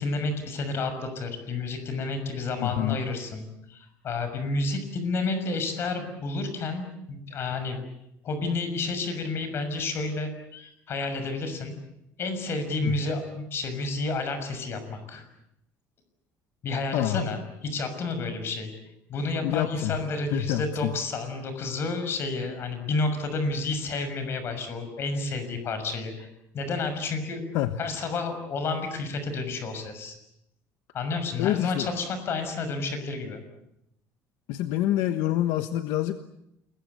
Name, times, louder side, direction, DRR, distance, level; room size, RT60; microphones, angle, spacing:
voice 1, 0.0-7.8 8.2-11.7 12.2-15.2 16.6-18.7 19.1-26.3 26.5-27.4 27.8-30.2 30.9-33.4, left 3 dB, 40° left, 9 dB, 6.3 m, -30 dB
voice 2, 2.6-3.0 12.8-13.0 16.9-17.2 19.4-20.0 20.3-20.9 27.5-27.7 31.4-31.9 34.5-36.2, left 13 dB, 80° left, 9 dB, 1.3 m, -27 dB
29.0 x 22.0 x 8.2 m, 0.79 s
cardioid pair, 150°, 6 cm